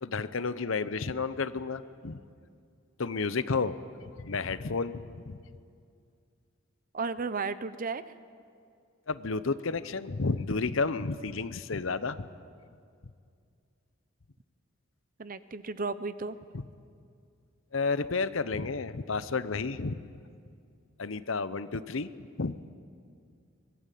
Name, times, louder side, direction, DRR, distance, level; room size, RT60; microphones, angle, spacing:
voice 1, 0.0-2.2 3.0-5.4 9.1-12.3 16.5-16.6 17.7-20.0 21.0-22.1 22.4-22.6, left 4 dB, 70° left, 14 dB, 0.8 m, -31 dB
voice 2, 6.9-8.0 15.2-16.4, right 4 dB, 45° right, 14 dB, 0.8 m, -34 dB
23.5 x 20.0 x 8.5 m, 2.3 s
head